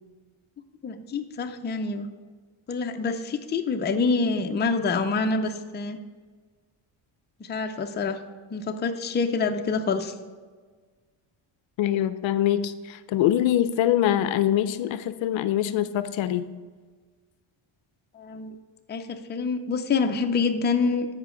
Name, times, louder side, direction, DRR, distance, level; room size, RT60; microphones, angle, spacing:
voice 1, 0.8-2.1 2.7-6.0 7.5-8.2 8.5-10.1 18.2-18.5 18.9-21.1, left 4 dB, 20° left, 5 dB, 0.5 m, -26 dB
voice 2, 11.8-16.5, left 11 dB, 65° left, 13 dB, 0.6 m, -24 dB
13.0 x 5.2 x 3.8 m, 1.5 s
cardioid pair, 130°, 50 cm